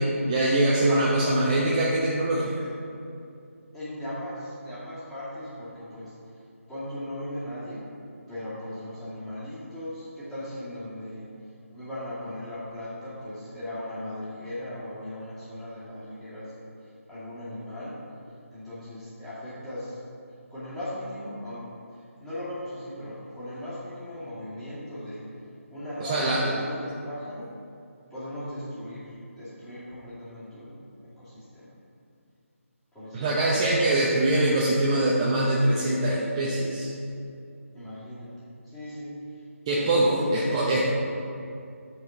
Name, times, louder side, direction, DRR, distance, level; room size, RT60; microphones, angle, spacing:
voice 1, 0.0-2.7 26.0-26.5 33.1-36.9 39.7-40.8, right 1 dB, 20° right, -6 dB, 0.8 m, -23 dB
voice 2, 3.7-6.4 6.7-7.9 8.3-11.3 11.7-18.0 18.5-20.0 20.5-25.3 25.7-27.5 28.1-31.8 32.9-33.4 33.9-34.1 37.7-39.4 39.8-40.4, left 1 dB, 5° left, -13 dB, 2.2 m, -38 dB
8.4 x 4.4 x 7.3 m, 2.6 s
figure-of-eight pair, 160°, 8 cm